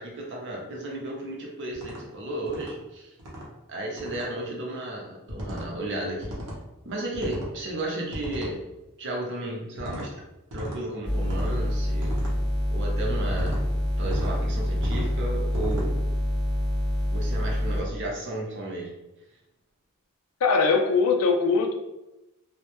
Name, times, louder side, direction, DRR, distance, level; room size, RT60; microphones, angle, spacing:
voice 1, 0.0-3.1 3.7-6.4 6.8-8.6 9.0-10.1 10.5-12.1 12.7-13.6 14.0-16.0 17.1-18.9, right 1 dB, 55° right, -2 dB, 0.6 m, -33 dB
sound 1, 1.7-2.0 2.5-2.7 3.2-3.5 4.0-4.3 5.3-5.7 6.2-6.6 7.1-7.5 8.1-8.5 9.8-10.1 10.5-10.8 11.2-11.6 12.0-12.3 13.3-13.6 14.0-14.3 14.8-15.1 15.5-15.9, equal, 90° right, 0.7 m, -35 dB
sound 2, 11.0-17.8, equal, 5° left, 0.9 m, -26 dB
voice 2, 20.4-21.7, left 4 dB, 80° left, 4 dB, 0.4 m, -21 dB
2.1 x 2.1 x 2.9 m, 0.98 s
head